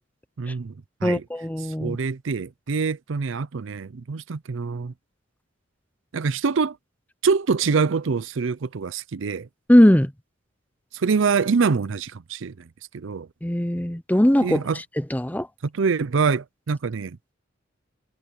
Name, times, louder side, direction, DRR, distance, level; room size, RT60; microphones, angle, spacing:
voice 1, 0.4-0.7 1.0-1.2 1.6-4.9 6.1-6.8 7.2-9.5 10.9-13.3 14.4-14.8 15.6-17.2, right 5 dB, 70° right, 0.5 m, -25 dB
voice 2, 1.0-2.0 9.7-10.1 13.4-14.6 15.1-15.5, left 1 dB, 10° left, 0.8 m, -19 dB
head